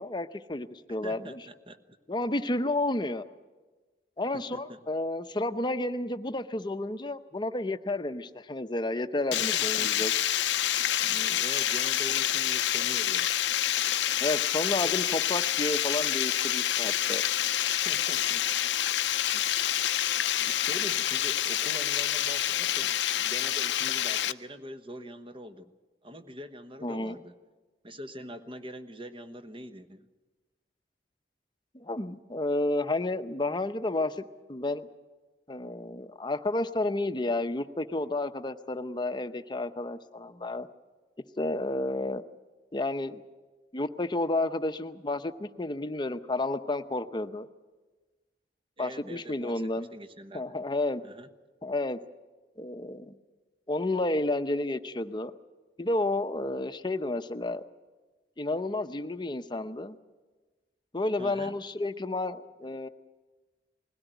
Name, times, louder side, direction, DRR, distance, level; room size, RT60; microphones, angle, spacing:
voice 1, 0.0-1.4 2.1-3.2 4.2-10.1 14.2-17.2 26.8-27.2 31.7-34.9 35.5-40.7 41.4-42.2 42.7-43.2 43.7-47.5 48.8-49.9 50.3-51.0 51.6-52.0 52.6-53.1 53.7-55.3 55.8-57.6 58.4-60.0 60.9-62.9, left 2 dB, 25° left, 10 dB, 0.8 m, -31 dB
voice 2, 0.9-2.0 4.3-4.9 9.3-10.1 11.0-13.3 14.8-15.0 17.7-18.5 19.3-19.5 20.4-25.7 26.0-27.4 27.8-30.1 48.8-50.4 51.0-51.3 61.2-61.5, equal, 30° right, 9 dB, 1.1 m, -43 dB
Water, 9.3-24.3, left 12 dB, 80° left, 0.6 m, -27 dB
21.0 x 16.5 x 9.2 m, 1.3 s
head